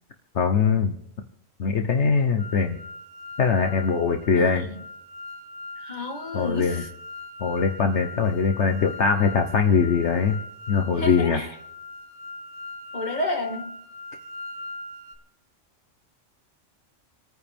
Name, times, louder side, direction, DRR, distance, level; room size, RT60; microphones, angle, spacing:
voice 1, 0.3-0.9 1.6-2.8 3.4-4.6 6.3-6.8 7.4-10.4 10.7-11.4, left 5 dB, 65° left, 1.3 m, -22 dB
sound 1, 2.4-15.2, left 2 dB, 20° right, 2.0 m, -40 dB
voice 2, 4.3-4.8 5.8-6.9 11.0-11.6 12.9-13.8, left 2 dB, 35° left, 2.1 m, -31 dB
28.0 x 9.6 x 3.5 m
omnidirectional pair, 1.3 m